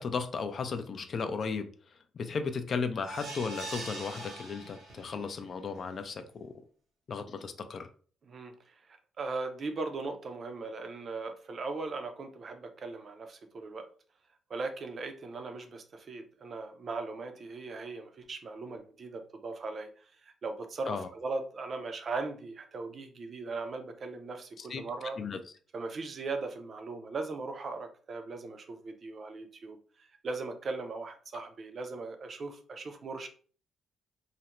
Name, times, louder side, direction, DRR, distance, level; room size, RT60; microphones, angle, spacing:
voice 1, 0.0-1.7 2.1-6.5 7.1-7.9 20.9-21.1 24.6-24.8 25.2-25.4 31.3-31.4, left 5 dB, 50° left, 9 dB, 0.3 m, -35 dB
sound 1, 3.0-5.3 5.7-5.8 6.2-6.3, right 2 dB, 65° right, 0.9 m, -42 dB
voice 2, 8.2-13.9 14.5-25.2 25.7-33.3, right 3 dB, 45° right, 6 dB, 0.5 m, -39 dB
2.4 x 2.1 x 2.9 m, 0.42 s
cardioid pair, 90°, 0 cm